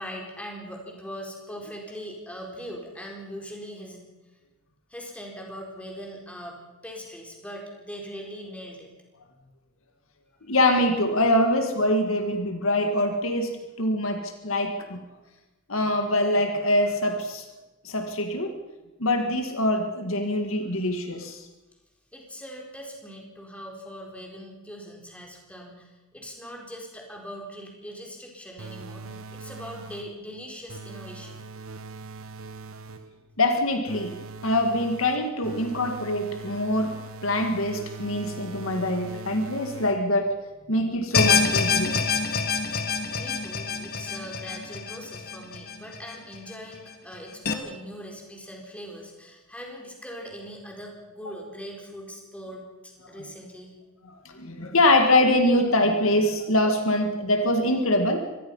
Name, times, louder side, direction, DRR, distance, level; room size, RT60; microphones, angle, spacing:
voice 1, 0.0-4.1 4.9-8.9 22.1-31.4 35.6-35.8 41.1-41.2 43.1-53.7, equal, 5° left, 0 dB, 4.3 m, -41 dB
voice 2, 10.5-15.0 15.7-17.5 17.8-18.6 19.0-21.4 33.4-34.1 34.4-36.9 37.2-40.3 40.7-42.0 51.3-51.4 54.3-58.2, left 1 dB, 70° left, 5 dB, 2.0 m, -24 dB
sound 1, 28.6-30.2 30.7-33.2 33.9-40.3, right 4 dB, 70° right, 1.1 m, -41 dB
sound 2, 41.1-46.4 46.7-46.8 47.5-47.6, left 5 dB, 45° left, 1.7 m, -26 dB
25.0 x 19.0 x 5.6 m, 1.1 s
head